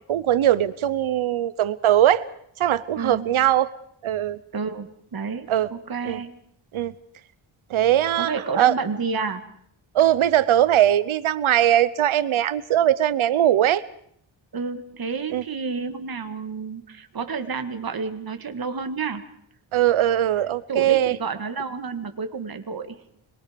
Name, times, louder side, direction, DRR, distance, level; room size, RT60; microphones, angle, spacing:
voice 1, 0.1-2.2 2.6-3.7 4.0-4.4 5.5-5.7 6.0-6.2 6.7-6.9 7.7-8.7 9.9-13.8 15.3-15.4 19.7-21.1, right 12 dB, 75° right, 17 dB, 0.9 m, -20 dB
voice 2, 2.9-3.3 4.5-6.4 8.2-9.4 14.5-19.2 20.7-23.0, right 5 dB, 45° right, 7 dB, 1.9 m, -30 dB
26.0 x 22.0 x 5.2 m, 0.67 s
wide cardioid pair, 120°, 49 cm